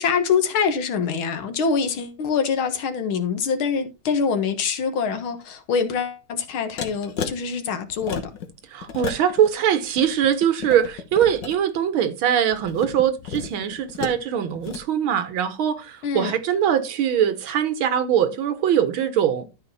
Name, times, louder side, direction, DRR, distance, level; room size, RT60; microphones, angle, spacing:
voice 1, 0.0-8.3 16.0-16.3, left 6 dB, 85° left, 2.1 m, -24 dB
sound 1, 6.8-7.3 7.9-8.5 8.8-9.5 9.8-11.6 12.5-14.2 14.5-14.8, left 7 dB, 65° left, 1.9 m, -33 dB
voice 2, 8.7-19.5, right 9 dB, 85° right, 2.0 m, -22 dB
12.5 x 4.8 x 4.1 m
omnidirectional pair, 2.2 m